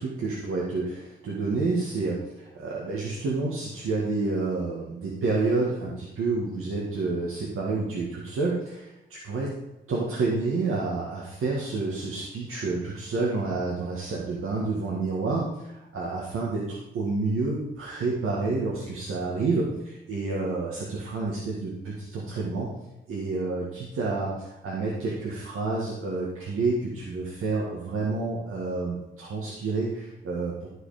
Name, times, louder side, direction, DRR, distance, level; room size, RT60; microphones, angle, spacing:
voice 1, 0.0-9.5 9.9-22.7 23.1-30.7, right 3 dB, 85° right, -3 dB, 1.9 m, -29 dB
13.0 x 5.0 x 5.0 m, 0.95 s
wide cardioid pair, 120°, 21 cm